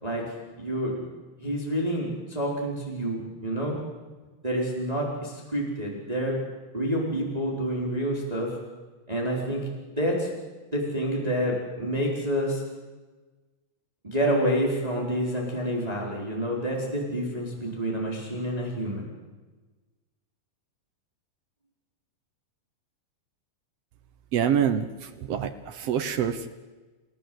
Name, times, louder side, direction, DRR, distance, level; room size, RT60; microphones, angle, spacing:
voice 1, 0.0-1.1 1.4-3.8 4.4-6.4 6.7-8.6 9.1-9.7 10.0-10.4 10.7-12.6 14.0-19.1, equal, 10° right, -2 dB, 4.2 m, -28 dB
voice 2, 24.3-26.5, right 8 dB, 80° right, 8 dB, 1.4 m, -26 dB
29.5 x 17.0 x 7.9 m, 1.3 s
omnidirectional pair, 4.4 m